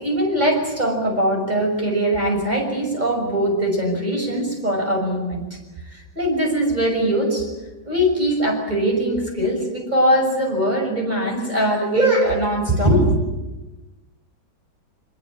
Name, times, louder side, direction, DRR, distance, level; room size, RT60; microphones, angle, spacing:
voice 1, 0.0-5.6 5.8-7.5 7.8-13.1, right 1 dB, 20° right, 1 dB, 6.7 m, -21 dB
24.0 x 22.0 x 8.9 m, 1.1 s
omnidirectional pair, 2.1 m